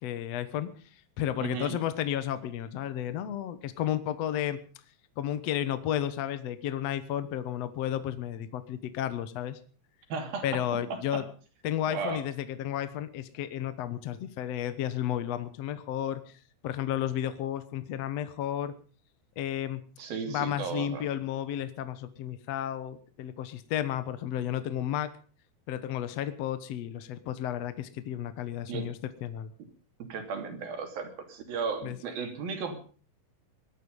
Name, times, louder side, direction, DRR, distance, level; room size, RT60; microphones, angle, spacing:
voice 1, 0.0-4.6 5.2-9.6 10.4-11.3 11.6-16.2 16.6-18.7 19.4-19.8 20.3-25.1 25.7-29.5 31.8-32.0, left 11 dB, 60° left, 12 dB, 1.9 m, -32 dB
voice 2, 1.4-1.8 10.1-10.6 10.9-11.2 11.9-12.2 20.0-21.1 28.7-28.9 30.1-32.7, right 5 dB, 85° right, 5 dB, 4.6 m, -35 dB
20.0 x 13.0 x 5.4 m, 0.40 s
omnidirectional pair, 4.0 m